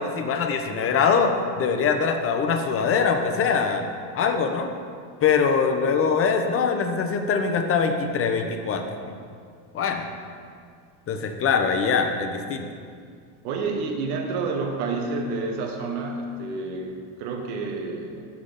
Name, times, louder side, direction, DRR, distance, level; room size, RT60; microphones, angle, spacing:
voice 1, 0.0-3.9 4.1-4.7 5.2-8.8 9.7-10.1 11.1-12.7, left 5 dB, 30° left, 5 dB, 0.7 m, -23 dB
voice 2, 13.4-18.3, right 3 dB, 80° right, 3 dB, 1.1 m, -29 dB
6.4 x 5.8 x 5.0 m, 2.2 s
supercardioid pair, 120°, 44 cm